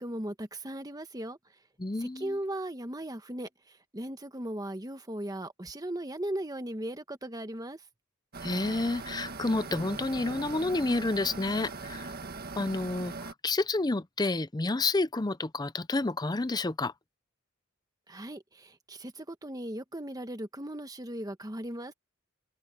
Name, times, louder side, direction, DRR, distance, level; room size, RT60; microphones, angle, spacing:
voice 1, 0.0-1.4 2.0-3.5 3.9-7.8 18.1-21.9, right 1 dB, 20° right, 1.4 m, -37 dB
voice 2, 1.8-2.4 8.4-12.1 12.6-16.9, left 2 dB, 20° left, 0.6 m, -30 dB
sound 1, 8.3-13.3, right 3 dB, 50° right, 1.7 m, -40 dB
head